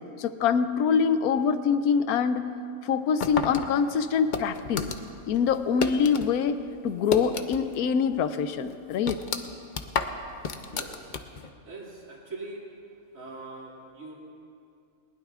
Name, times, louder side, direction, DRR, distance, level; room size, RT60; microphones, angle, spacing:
voice 1, 0.2-2.5 2.8-4.8 5.3-6.6 6.8-9.2, left 6 dB, 85° left, 11 dB, 1.1 m, -24 dB
sound 1, 3.2-6.3 6.6-7.8 8.1-8.2 8.7-11.5, left 5 dB, 50° left, 0.6 m, -32 dB
voice 2, 10.7-11.2 11.6-12.7 13.1-14.1, right 3 dB, 65° right, -4 dB, 2.7 m, -42 dB
20.5 x 19.0 x 2.4 m, 2.5 s
omnidirectional pair, 1.5 m